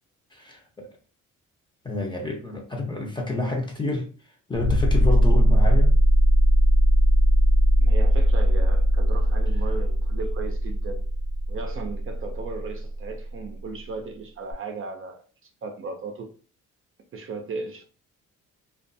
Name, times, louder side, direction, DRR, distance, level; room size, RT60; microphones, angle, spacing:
voice 1, 0.3-0.9 1.8-4.1 4.5-5.9, left 2 dB, 15° left, 0.8 m, -29 dB
sound 1, 4.6-13.0 14.5-14.6, equal, 60° left, 0.6 m, -19 dB
voice 2, 7.8-11.0 11.5-15.2 15.6-16.3 17.1-17.8, right 4 dB, 45° right, 0.5 m, -36 dB
2.4 x 2.3 x 2.6 m
cardioid pair, 90°, 30 cm